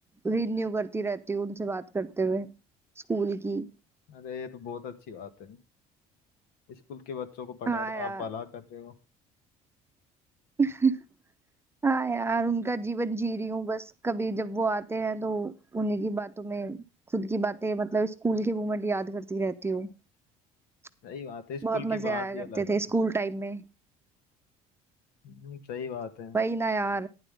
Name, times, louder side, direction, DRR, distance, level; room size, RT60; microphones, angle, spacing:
voice 1, 0.2-2.5 3.1-3.7 7.7-8.2 10.6-11.0 11.8-16.8 17.1-19.9 21.6-23.6 26.3-27.1, right 3 dB, 15° right, 0.8 m, -29 dB
voice 2, 4.1-5.6 6.7-8.9 21.0-22.8 25.2-26.4, left 6 dB, 75° left, 1.9 m, -39 dB
11.5 x 10.5 x 3.5 m
cardioid pair, 110°, 16 cm